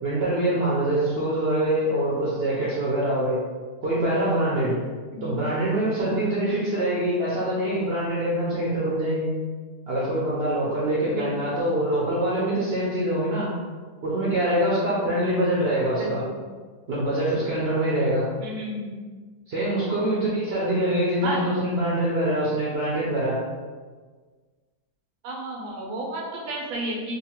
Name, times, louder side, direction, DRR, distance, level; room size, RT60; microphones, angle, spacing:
voice 1, 0.0-3.4 3.8-4.7 5.2-9.3 9.9-13.5 14.0-16.2 16.9-18.2 19.5-23.4, right 1 dB, 65° right, -7 dB, 0.6 m, -24 dB
voice 2, 6.5-6.8 11.1-11.5 16.0-16.3 18.4-18.9 20.1-20.4 21.2-21.5 25.2-27.1, right 1 dB, 90° right, -1 dB, 1.1 m, -32 dB
2.8 x 2.1 x 2.8 m, 1.5 s
omnidirectional pair, 1.6 m